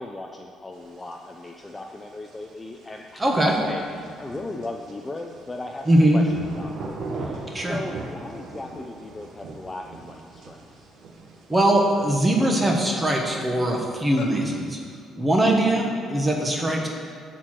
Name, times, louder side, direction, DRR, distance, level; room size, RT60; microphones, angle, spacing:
voice 1, 0.0-6.7 7.1-10.9, left 2 dB, 15° left, 2 dB, 0.5 m, -37 dB
sound 1, 0.7-12.4, right 3 dB, 60° right, 1.3 m, -41 dB
voice 2, 3.2-3.6 5.8-6.2 7.5-7.8 11.5-14.8 15.2-16.9, right 1 dB, 10° right, 0 dB, 1.2 m, -21 dB
sound 2, 8.3-8.4 8.6-9.1 9.5-11.1 11.7-11.8 12.1-14.4, left 5 dB, 75° left, 1.2 m, -43 dB
11.0 x 4.6 x 7.5 m, 2.3 s
cardioid pair, 170°, 0 cm